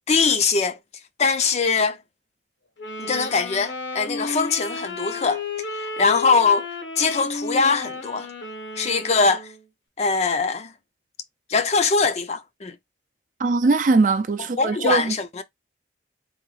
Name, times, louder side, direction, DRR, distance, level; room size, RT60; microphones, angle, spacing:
voice 1, 0.1-0.8 1.2-2.0 3.0-5.4 5.7-6.7 7.0-8.3 8.8-9.5 10.0-10.7 11.5-12.8 14.6-15.4, left 4 dB, 35° left, 0.5 m, -22 dB
Wind instrument woodwind instrument, 2.8-9.6, left 3 dB, 80° left, 1.1 m, -33 dB
voice 2, 13.4-15.1, right 3 dB, 45° right, 0.4 m, -20 dB
3.9 x 2.7 x 3.1 m
head